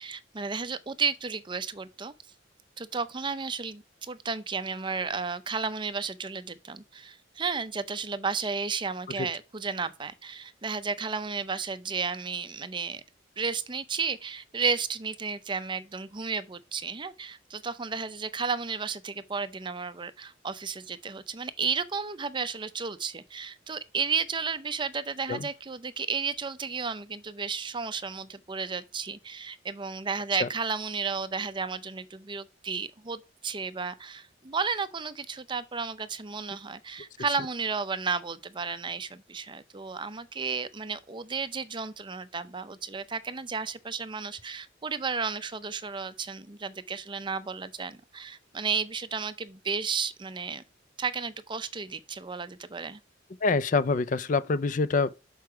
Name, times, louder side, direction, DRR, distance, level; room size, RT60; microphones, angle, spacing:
voice 1, 0.0-2.1 2.8-13.0 13.4-50.6 51.0-53.0, right 5 dB, 25° right, 0.6 m, -33 dB
voice 2, 53.4-55.1, left 4 dB, 45° left, 0.5 m, -25 dB
6.6 x 4.7 x 4.5 m
head